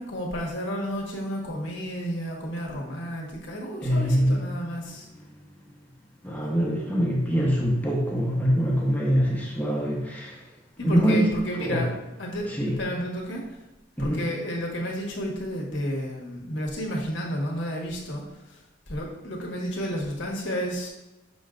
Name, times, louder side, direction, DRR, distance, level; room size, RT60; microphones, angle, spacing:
voice 1, 0.0-5.1 10.8-11.9 12.2-13.6 14.0-18.6 18.9-20.9, equal, 80° left, -2 dB, 1.5 m, -31 dB
voice 2, 3.8-4.5 6.2-10.4 10.8-11.3 11.6-11.8 12.5-12.7 14.0-14.2, equal, 10° left, -3 dB, 1.0 m, -24 dB
6.9 x 5.3 x 2.6 m, 1.1 s
head